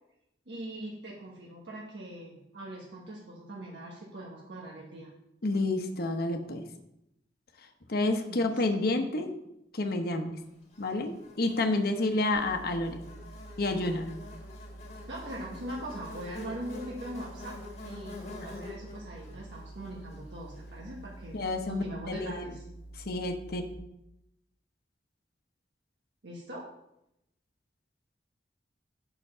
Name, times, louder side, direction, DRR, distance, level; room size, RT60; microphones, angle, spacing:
voice 1, 0.5-5.1 8.3-8.6 15.1-17.5 17.8-21.4 21.7-22.6 26.2-26.6, right 1 dB, 80° right, -4 dB, 1.4 m, -41 dB
voice 2, 5.4-6.6 7.9-9.3 9.7-10.3 10.8-13.0 13.6-14.1 21.3-22.4 23.1-23.6, left 2 dB, 60° left, 5 dB, 0.9 m, -29 dB
Buzz, 10.7-21.1, left 2 dB, 40° left, 1.9 m, -47 dB
sound 1, 12.3-23.7, right 1 dB, 35° right, 3.3 m, -48 dB
7.0 x 5.9 x 5.5 m, 0.85 s
head